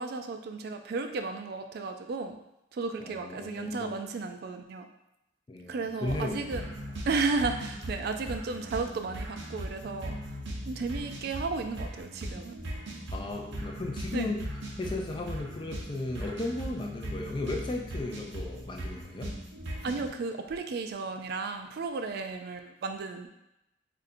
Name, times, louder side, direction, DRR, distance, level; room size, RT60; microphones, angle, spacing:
voice 1, 0.0-2.4 2.7-4.9 5.7-6.7 7.1-10.2 10.7-12.6 14.1-14.3 19.8-23.3, right 4 dB, 60° right, 6 dB, 0.3 m, -33 dB
voice 2, 3.0-3.9 5.5-6.8 13.1-14.4 14.8-19.3, left 2 dB, 25° left, 1 dB, 0.3 m, -35 dB
sound 1, 6.1-20.1, right 1 dB, 80° right, 0.8 m, -39 dB
2.6 x 2.6 x 4.1 m, 0.88 s
head